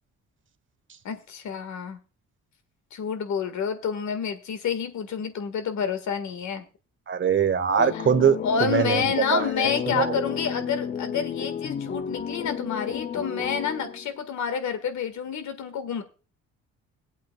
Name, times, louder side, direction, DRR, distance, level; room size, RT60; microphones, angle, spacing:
voice 1, 1.0-2.0 2.9-6.6 7.9-8.0 8.4-16.0, left 7 dB, 70° left, 1.7 m, -29 dB
voice 2, 7.1-10.2, right 7 dB, 40° right, 1.0 m, -23 dB
sound 1, 7.8-14.2, left 7 dB, 30° left, 0.5 m, -32 dB
19.5 x 8.2 x 2.3 m
cardioid pair, 90°, 30 cm